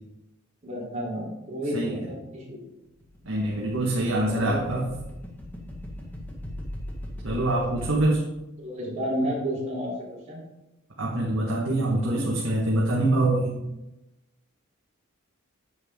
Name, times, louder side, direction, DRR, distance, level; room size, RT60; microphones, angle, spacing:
voice 1, 0.6-2.6 4.3-4.9 8.6-10.5 11.6-12.3, equal, 35° right, -5 dB, 3.6 m, -32 dB
voice 2, 1.7-2.1 3.2-4.8 7.2-8.2 11.0-13.5, right 1 dB, 70° right, -3 dB, 1.7 m, -25 dB
sound 1, 2.9-7.9, left 1 dB, 10° left, 1.6 m, -39 dB
9.4 x 8.4 x 3.7 m, 0.95 s
head